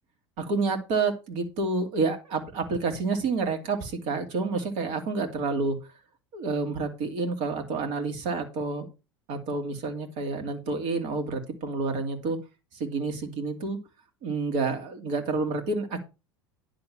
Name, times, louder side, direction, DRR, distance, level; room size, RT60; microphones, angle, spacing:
voice 1, 0.4-5.8 6.3-8.9 9.3-12.4 12.7-13.8 14.2-16.0, right 3 dB, 55° right, 6 dB, 2.6 m, -29 dB
10.5 x 3.8 x 7.4 m, 0.29 s
hypercardioid pair, 80°, 15 cm